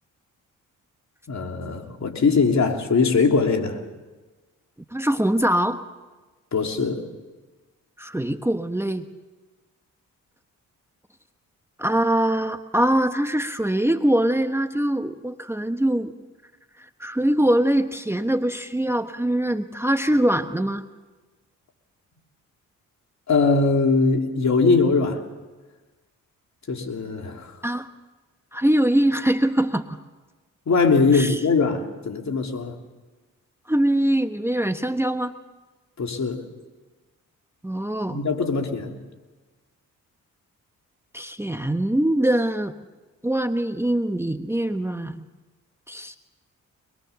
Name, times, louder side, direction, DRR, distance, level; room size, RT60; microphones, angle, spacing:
voice 1, 1.3-3.8 6.5-7.0 23.3-25.2 26.7-27.5 30.7-32.7 36.0-36.4 38.1-39.0, left 4 dB, 55° left, 3 dB, 3.1 m, -21 dB
voice 2, 4.9-5.8 8.0-9.1 11.8-16.1 16.8-20.8 27.6-27.9 28.5-30.0 31.1-31.4 33.7-35.3 37.6-38.2 41.1-42.7 43.2-45.2 45.9-46.2, right 1 dB, 5° right, 9 dB, 1.1 m, -23 dB
24.5 x 21.5 x 7.0 m, 1.3 s
supercardioid pair, 60°, 34 cm